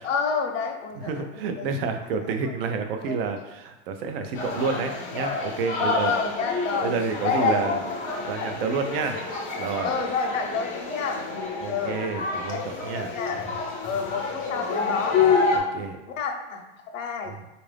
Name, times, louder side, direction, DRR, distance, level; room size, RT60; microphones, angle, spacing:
voice 1, 0.0-1.7 2.3-2.5 3.0-3.2 5.8-6.9 7.2-7.8 8.3-8.6 9.0-9.1 9.8-11.2 11.7-12.6 12.9-13.4 13.8-15.2 16.1-16.6 16.9-17.4, left 5 dB, 80° left, 4 dB, 0.8 m, -29 dB
voice 2, 1.1-6.1 6.8-7.8 8.2-9.3 9.6-9.9 11.6-13.4 15.5-16.0 17.3-17.4, right 5 dB, 50° right, 6 dB, 0.5 m, -29 dB
sound 1, 4.4-15.6, left 4 dB, 20° left, 0.5 m, -28 dB
3.8 x 2.5 x 3.3 m, 1.1 s
supercardioid pair, 150°, 38 cm